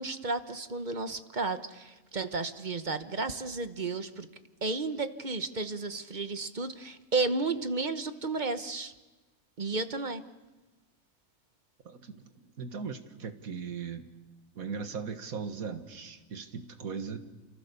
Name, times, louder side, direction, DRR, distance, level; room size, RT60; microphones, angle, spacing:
voice 1, 0.0-4.3 4.6-8.9 9.6-10.2, right 3 dB, 35° right, 1.2 m, -33 dB
voice 2, 11.9-12.2 12.6-14.1 14.6-17.2, right 5 dB, 85° right, 1.9 m, -38 dB
29.0 x 27.0 x 6.9 m
omnidirectional pair, 1.4 m